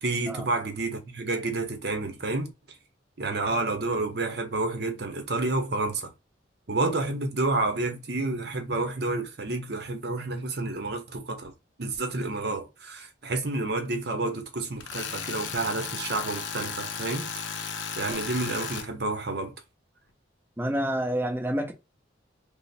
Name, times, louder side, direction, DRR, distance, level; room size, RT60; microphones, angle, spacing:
voice 1, 0.0-2.5 3.2-6.1 6.7-11.5 11.8-17.5 17.9-19.5, right 2 dB, 55° right, 0.8 m, -29 dB
Tools, 14.8-18.9, left 6 dB, 70° left, 0.5 m, -35 dB
voice 2, 20.6-21.7, equal, 10° right, 0.6 m, -28 dB
3.0 x 2.0 x 4.1 m
head